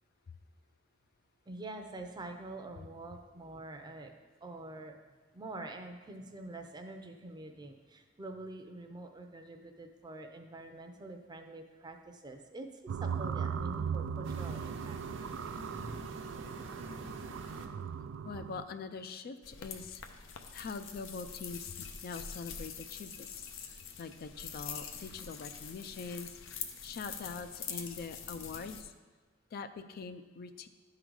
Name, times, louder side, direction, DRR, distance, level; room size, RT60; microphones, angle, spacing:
voice 1, 1.5-4.1 4.4-5.0 5.3-15.0, right 2 dB, 20° right, 5 dB, 0.6 m, -46 dB
sound 1, 12.9-18.6, right 7 dB, 85° right, 0.3 m, -38 dB
sound 2, 14.2-17.6, right 2 dB, 70° right, 0.8 m, -45 dB
voice 2, 18.2-20.0 20.5-28.9 29.5-30.7, left 4 dB, 50° left, 9 dB, 0.4 m, -43 dB
sound 3, 19.4-28.8, left 7 dB, 90° left, 0.6 m, -45 dB
11.0 x 3.8 x 4.8 m, 1.4 s
head